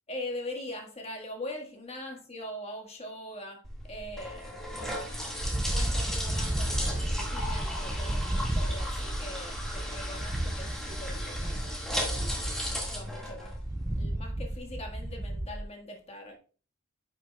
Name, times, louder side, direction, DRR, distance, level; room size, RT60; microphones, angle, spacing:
voice 1, 0.1-4.6 5.7-16.4, left 1 dB, 30° left, 1.6 m, -42 dB
sound 1, 3.6-14.0, equal, ahead, 1.8 m, -36 dB
sound 2, 5.4-15.6, right 1 dB, 15° right, 0.3 m, -33 dB
9.6 x 6.0 x 2.3 m
head